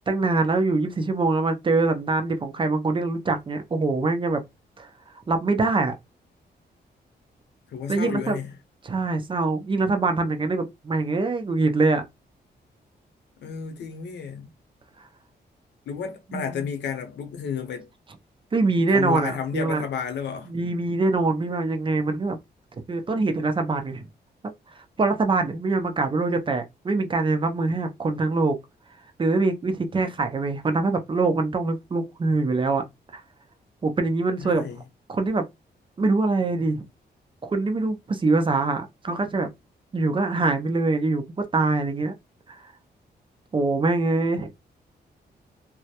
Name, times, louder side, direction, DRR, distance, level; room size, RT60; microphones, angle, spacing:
voice 1, 0.1-4.4 4.8-4.9 5.3-5.9 7.9-8.4 8.8-12.0 16.3-16.7 18.5-19.8 20.5-22.4 22.9-24.1 24.8-28.6 29.2-32.8 33.1-33.2 33.8-34.6 35.1-35.4 36.0-36.9 37.4-39.5 39.9-42.1 42.5-42.6 43.5-44.5, right 3 dB, 30° right, 0.4 m, -24 dB
voice 2, 7.7-8.5 13.4-14.5 15.9-17.9 18.9-20.5 34.4-34.8, left 7 dB, 85° left, 0.6 m, -32 dB
2.2 x 2.0 x 2.8 m
wide cardioid pair, 125°, 18 cm